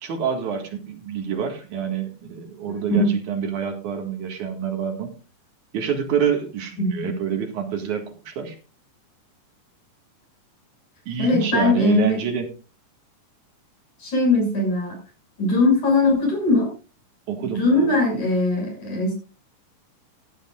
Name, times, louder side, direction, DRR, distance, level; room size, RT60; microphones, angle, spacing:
voice 1, 0.0-5.1 5.7-8.6 11.1-12.5 17.3-18.0, right 7 dB, 70° right, 4 dB, 3.3 m, -27 dB
voice 2, 6.8-7.1 11.2-12.2 14.0-15.0 15.4-16.7 17.6-19.2, left 2 dB, 65° left, 1 dB, 7.8 m, -20 dB
17.0 x 11.5 x 2.5 m, 0.33 s
omnidirectional pair, 3.7 m